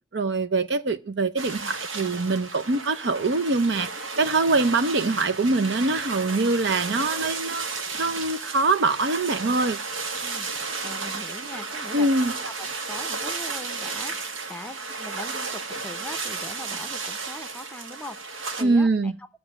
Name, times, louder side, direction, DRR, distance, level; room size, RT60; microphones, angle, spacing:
voice 1, 0.1-3.9 4.2-7.7 8.0-9.8 11.9-12.3 18.6-19.1, right 3 dB, 60° right, 0.7 m, -23 dB
sound 1, 1.4-18.6, right 4 dB, 80° right, 1.7 m, -33 dB
voice 2, 10.2-12.1 12.4-19.1, left 1 dB, 5° left, 0.8 m, -41 dB
15.5 x 6.2 x 9.9 m
head